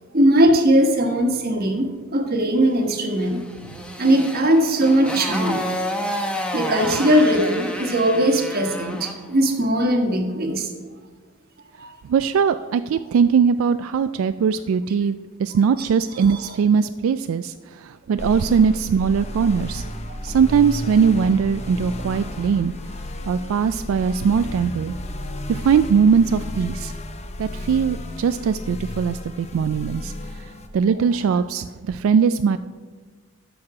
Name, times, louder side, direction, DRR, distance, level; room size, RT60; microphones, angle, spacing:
voice 1, 0.1-3.4 4.0-5.6 6.5-10.7 11.8-12.0 16.3-16.5 20.1-20.3, right 1 dB, 50° right, 4 dB, 1.3 m, -19 dB
Motorcycle, 3.2-9.2, equal, 5° left, 0.9 m, -30 dB
voice 2, 12.1-19.8 20.2-22.7 23.3-24.9 25.5-26.9 27.4-30.1 30.4-32.6, right 6 dB, 90° right, 12 dB, 0.3 m, -20 dB
sound 1, 18.2-30.7, left 1 dB, 35° left, 0.7 m, -33 dB
12.0 x 6.3 x 4.8 m, 1.4 s
head